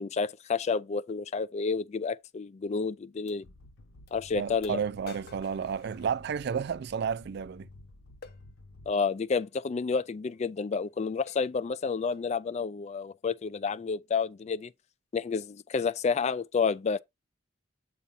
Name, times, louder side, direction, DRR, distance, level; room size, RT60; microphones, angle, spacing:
voice 1, 0.0-3.4 4.1-4.8 8.9-14.7 15.1-17.0, left 5 dB, 35° left, 0.3 m, -30 dB
sound 1, 2.2-2.3 3.3-3.4 4.1-4.2 4.6-6.6 8.2-8.4 9.3-9.5 10.3-10.5 10.8-11.0 11.3-11.6 12.1-12.4, left 4 dB, 55° left, 0.8 m, -50 dB
sound 2, 3.4-9.2, left 2 dB, 85° left, 0.8 m, -53 dB
voice 2, 4.3-7.7, right 7 dB, 60° right, 0.3 m, -32 dB
8.3 x 2.8 x 5.3 m
head